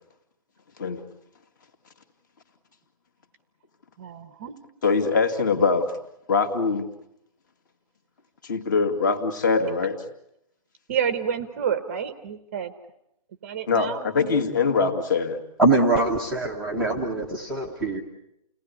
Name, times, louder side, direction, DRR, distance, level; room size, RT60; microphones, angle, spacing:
voice 1, 4.0-4.5 10.9-12.7 13.4-14.5, right 8 dB, 20° right, 11 dB, 1.0 m, -29 dB
voice 2, 4.8-5.9 6.3-6.9 8.4-10.0 13.7-15.4, left 4 dB, 30° left, 7 dB, 2.5 m, -23 dB
voice 3, 15.6-18.0, right 2 dB, ahead, -4 dB, 1.0 m, -23 dB
30.0 x 19.0 x 9.7 m, 0.81 s
hypercardioid pair, 175°, 20 cm